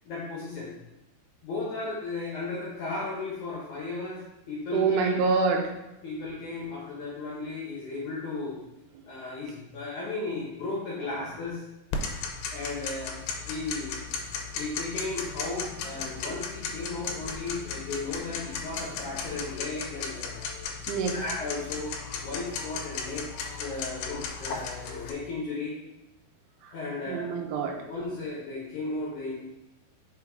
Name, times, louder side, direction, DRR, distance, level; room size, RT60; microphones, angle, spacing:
voice 1, 0.0-0.7 1.4-5.1 6.0-8.6 9.1-11.6 12.5-13.2 13.5-13.9 14.5-20.5 21.1-22.0 22.2-23.3 23.6-25.8 26.7-27.3 27.9-29.4, left 3 dB, 65° left, -5 dB, 2.1 m, -35 dB
voice 2, 4.7-5.7 8.9-9.0 11.0-11.3 20.9-21.2 26.6-26.7 27.1-27.8, right 5 dB, 80° right, 2 dB, 2.7 m, -27 dB
Tick-tock, 11.9-25.1, left 5 dB, 80° left, 2.6 m, -36 dB
6.0 x 4.9 x 3.6 m, 0.93 s
omnidirectional pair, 4.9 m